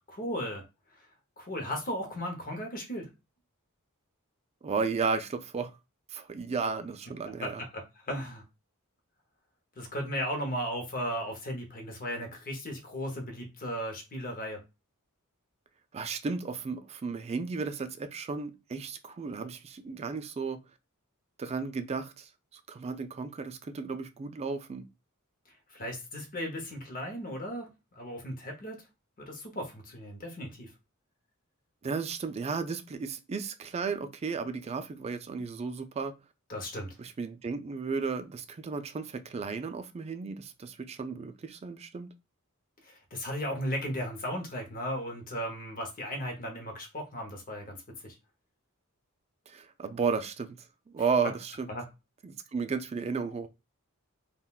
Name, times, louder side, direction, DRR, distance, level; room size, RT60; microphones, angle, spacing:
voice 1, 0.1-0.6 1.4-3.1 7.4-8.4 9.8-14.6 25.7-27.7 28.0-28.8 29.2-30.7 36.5-36.9 42.8-47.8 48.0-48.1 51.7-51.8, equal, 40° left, 0.8 m, -36 dB
voice 2, 4.6-5.7 6.1-7.6 15.9-20.6 21.4-24.8 31.8-36.1 37.0-42.1 49.5-50.6 50.9-51.7 52.2-53.5, right 5 dB, 30° right, 0.3 m, -34 dB
3.6 x 2.2 x 2.3 m
head